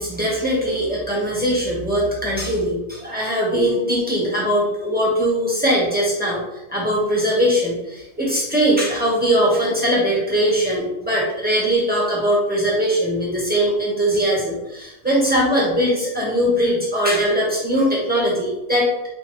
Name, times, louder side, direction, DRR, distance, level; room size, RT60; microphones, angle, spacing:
voice 1, 0.0-6.4 6.7-18.9, equal, 5° right, -5 dB, 1.0 m, -20 dB
4.3 x 2.6 x 3.1 m, 0.95 s
omnidirectional pair, 1.6 m